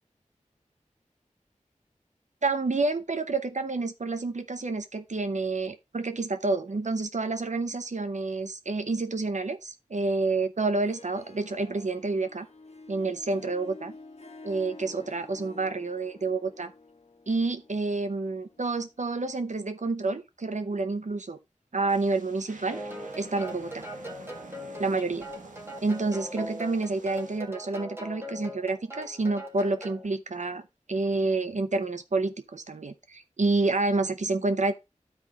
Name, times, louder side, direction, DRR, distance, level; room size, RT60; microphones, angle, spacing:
voice 1, 2.4-12.5 12.9-13.9 14.4-16.7 17.3-21.4 21.7-22.8 23.2-23.9 24.8-25.3 25.8-30.6 30.9-34.7, right 3 dB, 65° right, 0.7 m, -29 dB
Harp, 10.7-19.3, left 3 dB, 55° left, 1.1 m, -50 dB
sound 1, 21.9-27.4, right 3 dB, 80° right, 1.2 m, -49 dB
sound 2, 22.7-30.1, equal, 20° right, 1.7 m, -40 dB
12.0 x 4.8 x 2.9 m
wide cardioid pair, 45°, 13 cm